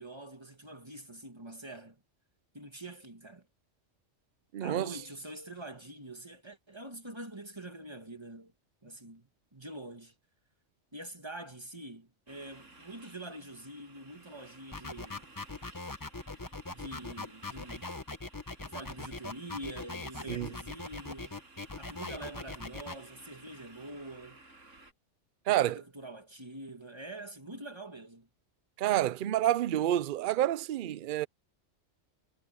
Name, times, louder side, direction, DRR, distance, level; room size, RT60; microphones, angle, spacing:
voice 1, 0.0-2.0 2.5-3.5 4.6-8.5 8.8-10.1 10.9-15.3 16.7-17.9 18.6-21.4 21.8-24.4 25.5-28.3, right 1 dB, 20° right, 2.4 m, -45 dB
voice 2, 4.5-4.9 20.3-20.5 25.5-25.8 28.8-31.3, right 13 dB, 60° right, 0.6 m, -28 dB
sound 1, 12.3-24.9, right 2 dB, 85° right, 5.7 m, -56 dB
sound 2, 14.7-23.0, left 3 dB, 20° left, 0.9 m, -40 dB
omnidirectional pair, 1.3 m